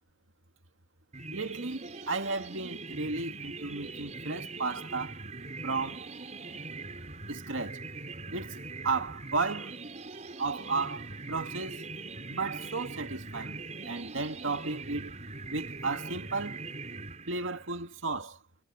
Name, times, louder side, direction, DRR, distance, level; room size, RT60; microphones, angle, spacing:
sound 1, 1.1-17.7, right 3 dB, 35° right, 5.6 m, -42 dB
voice 1, 1.3-5.2 5.6-6.1 7.3-7.8 8.3-9.8 10.4-11.9 12.3-15.2 15.5-16.6 17.3-18.4, right 3 dB, 80° right, 2.1 m, -34 dB
head